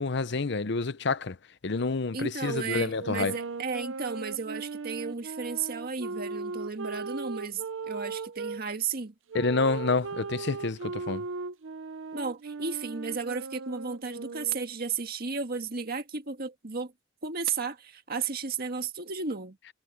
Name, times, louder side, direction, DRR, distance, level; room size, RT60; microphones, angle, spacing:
voice 1, 0.0-1.4 1.6-3.4 9.3-11.2, left 3 dB, 60° left, 0.7 m, -28 dB
voice 2, 2.1-9.1 12.1-16.9 17.2-19.6, right 5 dB, 50° right, 1.8 m, -34 dB
sound 1, 3.0-8.6 9.3-14.8, right 4 dB, 85° right, 0.7 m, -38 dB
head